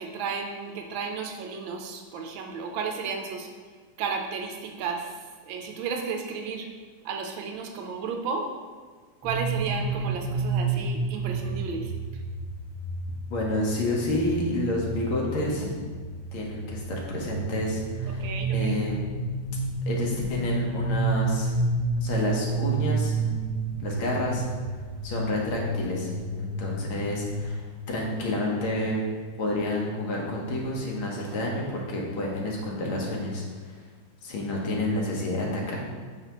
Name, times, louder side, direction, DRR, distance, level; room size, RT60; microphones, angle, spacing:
voice 1, 0.0-3.5 4.0-6.7 7.0-8.5 9.2-11.9 18.1-18.8, right 5 dB, 80° right, 3 dB, 1.4 m, -33 dB
sound 1, 9.2-27.5, right 3 dB, 20° left, 0.9 m, -30 dB
voice 2, 13.3-15.7 16.3-19.0 19.9-21.5 22.0-23.1 23.8-24.5 25.0-29.0 29.4-33.8 34.2-35.8, left 1 dB, 85° left, -2 dB, 1.9 m, -29 dB
5.9 x 5.6 x 2.9 m, 1.5 s
omnidirectional pair, 2.2 m